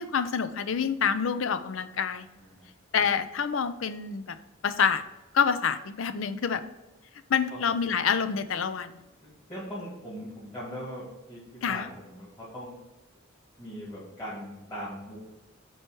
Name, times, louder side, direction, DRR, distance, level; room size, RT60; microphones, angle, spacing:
voice 1, 0.0-2.3 2.9-4.4 4.6-5.0 5.3-6.6 7.3-9.0 11.6-11.9, left 6 dB, 80° left, 13 dB, 0.5 m, -27 dB
voice 2, 9.5-12.3 12.5-12.8 13.6-15.2, equal, 25° left, -9 dB, 2.6 m, -40 dB
7.9 x 4.5 x 4.6 m, 1.1 s
head